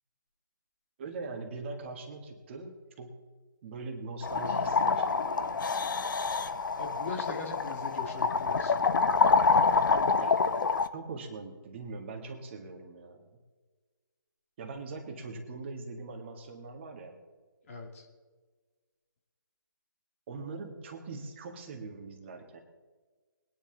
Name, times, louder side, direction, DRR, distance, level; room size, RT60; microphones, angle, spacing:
voice 1, 1.0-3.2 3.6-5.6 10.2-10.5 10.9-13.3 14.6-17.2 20.3-22.6, right 3 dB, 30° right, 3 dB, 1.8 m, -42 dB
sound 1, 4.2-10.9, left 4 dB, 60° left, 0.8 m, -27 dB
voice 2, 6.8-9.1 17.6-18.1, left 4 dB, 35° left, 1 dB, 2.5 m, -41 dB
21.5 x 10.0 x 4.0 m, 1.4 s
figure-of-eight pair, 150°, 12 cm